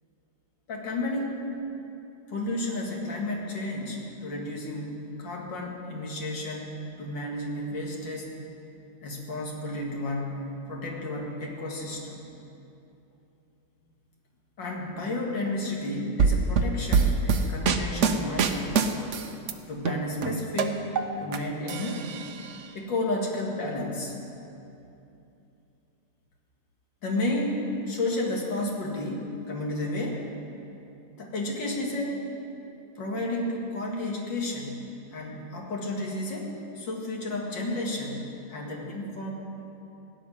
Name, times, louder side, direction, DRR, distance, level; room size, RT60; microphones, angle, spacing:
voice 1, 0.7-1.4 2.3-8.3 9.0-12.3 14.6-18.8 19.7-20.9 21.2-22.1 22.7-24.1 27.0-30.2 31.2-32.2 33.0-39.3, left 1 dB, 85° left, -1 dB, 2.7 m, -32 dB
sound 1, 16.2-19.5 19.9-21.4 21.7-22.6, right 5 dB, 55° right, 0.8 m, -24 dB
16.5 x 6.8 x 9.7 m, 2.8 s
omnidirectional pair, 1.9 m